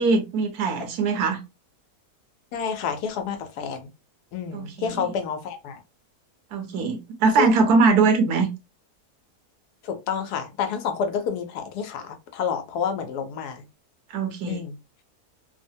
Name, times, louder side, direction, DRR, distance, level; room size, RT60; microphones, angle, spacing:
voice 1, 0.0-1.4 4.5-5.0 6.5-8.5 14.1-14.6, right 4 dB, 75° right, 1.2 m, -21 dB
voice 2, 2.5-3.9 4.3-5.8 7.4-7.5 9.8-13.7 14.5-14.8, left 7 dB, 80° left, 1.2 m, -29 dB
3.2 x 2.0 x 2.6 m
omnidirectional pair, 1.7 m